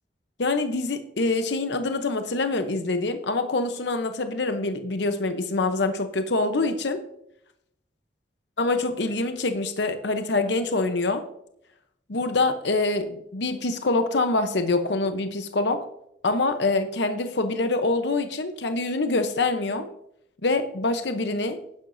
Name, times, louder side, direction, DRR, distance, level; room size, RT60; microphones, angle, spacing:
voice 1, 0.4-7.0 8.6-11.3 12.1-15.8 16.2-19.9 20.4-21.6, left 3 dB, 70° left, 8 dB, 0.8 m, -25 dB
11.5 x 10.5 x 2.6 m, 0.75 s
head